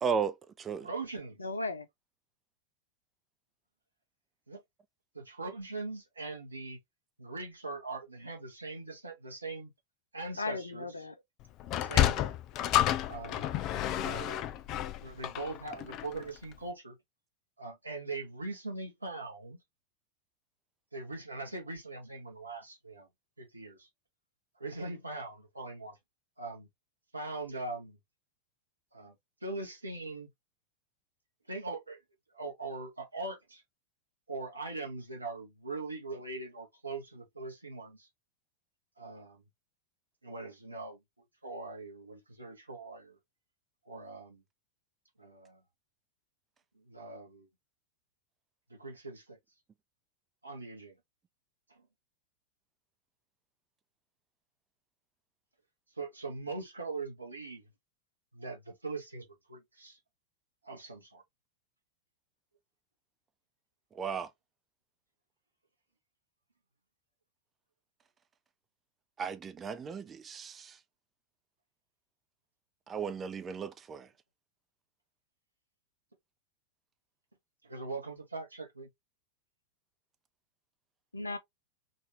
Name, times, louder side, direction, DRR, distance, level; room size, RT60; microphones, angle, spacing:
voice 1, 0.0-0.9 63.9-64.3 69.2-70.8 72.9-74.1, right 6 dB, 20° right, 0.5 m, -35 dB
voice 2, 0.8-1.5 4.5-4.6 5.1-6.8 7.2-9.7 10.1-10.9 11.8-12.3 13.1-13.5 14.0-14.5 15.0-17.0 17.6-19.6 20.9-23.1 23.4-23.9 24.6-26.0 26.4-26.7 27.1-28.0 28.9-29.1 29.4-30.3 31.5-32.0 32.3-33.6 34.3-38.1 39.0-39.4 40.2-41.0 41.4-43.2 43.9-44.4 45.2-45.6 46.7-47.5 48.7-49.4 50.4-51.0 51.7-51.8 56.0-57.6 58.3-60.0 60.6-61.2 77.6-78.9, right 3 dB, 80° right, 1.2 m, -41 dB
voice 3, 1.4-1.9 10.4-11.1 81.1-81.4, left 3 dB, 80° left, 0.6 m, -36 dB
Sliding door, 11.6-16.2, left 12 dB, 40° left, 0.4 m, -30 dB
4.0 x 2.7 x 2.9 m
figure-of-eight pair, 90°, 0 cm